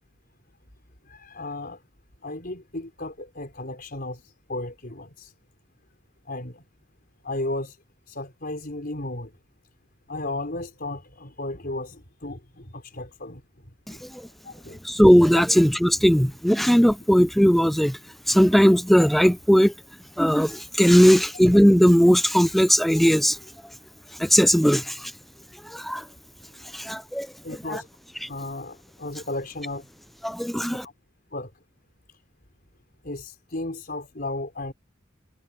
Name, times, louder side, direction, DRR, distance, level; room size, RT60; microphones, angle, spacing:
voice 1, 1.0-1.8 2.2-5.3 6.2-6.6 7.2-7.8 8.1-9.3 10.1-13.4 13.9-14.1 14.4-14.8 20.9-21.0 26.5-26.8 27.4-27.9 28.3-29.9 30.8-30.9 31.3-31.5 33.0-34.7, left 2 dB, 50° left, 4.7 m, -34 dB
voice 2, 14.8-18.0 18.3-19.7 20.2-23.4 24.2-25.1 25.7-26.0 26.7-27.3 27.7-27.8 28.2-28.3 30.2-30.9, equal, ahead, 0.3 m, -18 dB
head